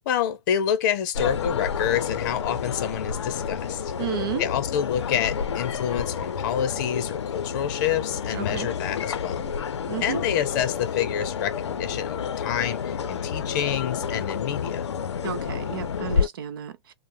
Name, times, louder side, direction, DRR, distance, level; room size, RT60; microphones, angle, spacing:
voice 1, 0.1-3.9 4.4-9.5 10.0-14.9, left 9 dB, 45° left, 0.6 m, -28 dB
sound 1, 1.1-16.3, left 7 dB, 90° left, 0.5 m, -29 dB
voice 2, 4.0-4.4 8.3-8.7 9.9-10.2 15.2-16.9, right 11 dB, 55° right, 0.5 m, -32 dB
2.2 x 2.0 x 3.0 m
hypercardioid pair, 145°, 14 cm